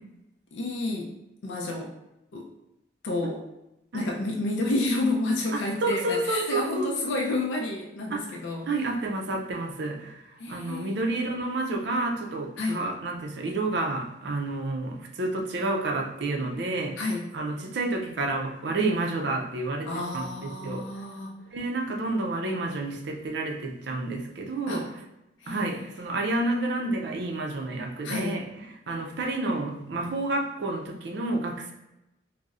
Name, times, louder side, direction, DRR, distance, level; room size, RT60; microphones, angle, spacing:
voice 1, 0.5-1.1 1.4-1.9 2.3-2.5 3.0-3.4 3.9-8.7 10.4-10.9 12.6-12.8 17.0-17.3 19.9-21.3 24.7-24.8 25.4-25.8 28.0-28.4, left 2 dB, 70° left, 0 dB, 0.4 m, -30 dB
voice 2, 5.8-6.9 8.1-8.2 8.7-17.0 17.3-20.8 21.5-25.0 25.5-28.5 28.9-31.7, right 2 dB, 60° right, 1 dB, 0.4 m, -30 dB
3.9 x 2.0 x 2.4 m, 0.91 s
head